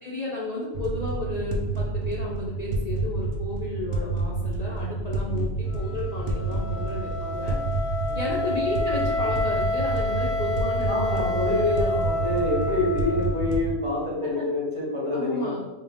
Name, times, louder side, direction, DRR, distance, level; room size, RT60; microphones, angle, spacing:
voice 1, 0.0-7.6 8.1-11.3 14.2-14.4 15.1-15.6, left 2 dB, 45° left, -6 dB, 0.6 m, -32 dB
sound 1, 0.7-13.7, right 3 dB, 85° right, 1.0 m, -29 dB
Wind instrument woodwind instrument, 5.7-13.7, left 2 dB, 75° left, 1.1 m, -29 dB
voice 2, 10.9-15.6, left 2 dB, 30° right, -6 dB, 1.1 m, -27 dB
3.8 x 2.8 x 3.4 m, 1.1 s
omnidirectional pair, 1.2 m